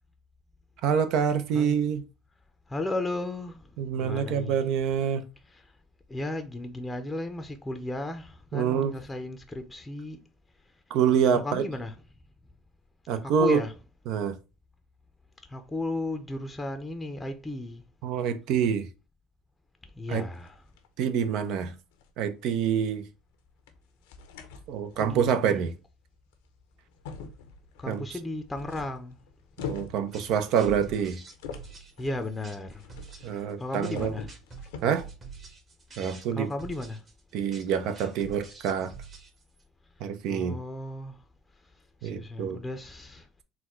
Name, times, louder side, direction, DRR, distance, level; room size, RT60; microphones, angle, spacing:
voice 1, 0.8-2.0 3.8-5.3 8.5-8.9 10.9-11.6 13.1-13.6 14.1-14.4 18.0-18.9 20.1-20.2 21.0-21.7 22.2-23.1 24.7-25.7 27.9-28.0 29.6-31.2 33.2-34.1 34.8-35.0 36.0-36.5 37.3-38.9 40.0-40.5 42.0-42.6, right 7 dB, 65° right, 0.6 m, -26 dB
voice 2, 2.7-4.6 5.5-5.7 6.1-10.2 11.3-11.9 13.2-13.7 15.5-17.8 19.9-20.6 24.9-25.7 27.8-29.2 32.0-32.9 33.3-34.3 36.1-37.0 40.3-41.2 42.0-43.4, left 2 dB, 15° left, 0.6 m, -35 dB
sound 1, 20.1-20.9 21.4-21.5 21.9-22.1 22.5-22.6 23.7-23.8 24.1-25.4 26.3-26.4 26.9-33.4 33.7-35.0, left 5 dB, 90° left, 0.7 m, -43 dB
sound 2, 30.1-39.6, right 4 dB, 35° right, 1.3 m, -47 dB
4.1 x 2.2 x 4.3 m
supercardioid pair, 95°, 0 cm